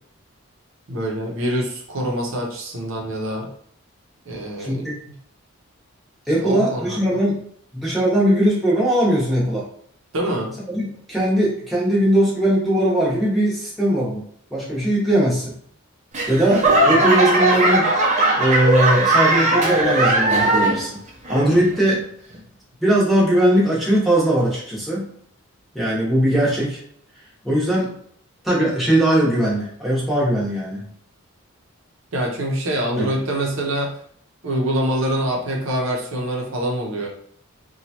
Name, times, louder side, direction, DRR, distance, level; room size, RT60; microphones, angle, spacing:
voice 1, 0.9-3.5 4.3-4.9 6.4-7.0 10.1-10.5 32.1-33.9 34.4-37.1, right 1 dB, 70° right, 0 dB, 0.7 m, -25 dB
voice 2, 4.6-5.0 6.3-7.4 7.7-9.7 10.7-15.5 16.3-17.9 18.4-21.0 21.3-22.0 22.8-25.1 25.7-26.8 27.4-27.9 28.4-30.8 33.0-33.2, right 1 dB, ahead, -7 dB, 0.8 m, -20 dB
Laughter / Clapping / Crowd, 16.1-20.9 21.2-21.8 22.3-22.4, right 2 dB, 35° right, 0.6 m, -18 dB
3.0 x 2.2 x 2.8 m, 0.63 s
head